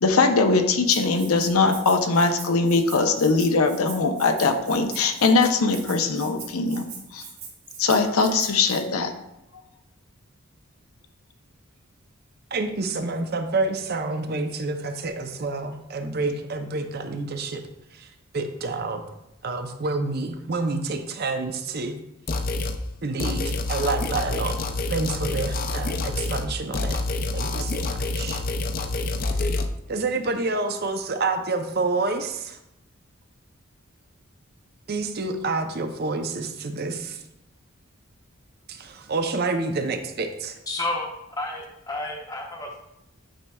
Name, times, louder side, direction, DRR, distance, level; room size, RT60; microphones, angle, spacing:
voice 1, 0.0-6.9 7.1-7.2 7.8-9.1, left 4 dB, 90° left, 6 dB, 0.7 m, -21 dB
Rattle (instrument), 0.9-8.8, right 6 dB, 75° right, 1.9 m, -41 dB
voice 2, 12.5-17.6 17.9-18.1 18.3-19.1 19.4-22.0 23.0-24.6 24.9-27.0 27.3-28.4 29.9-32.6 34.9-37.2 38.7-40.5, right 3 dB, 50° right, 7 dB, 0.6 m, -28 dB
sound 1, 22.3-22.8 23.2-26.5 26.7-29.7, left 2 dB, 40° left, 0.4 m, -27 dB
voice 3, 40.7-41.1 41.4-42.8, left 2 dB, 15° left, -1 dB, 0.8 m, -30 dB
8.7 x 5.3 x 2.3 m, 0.85 s
head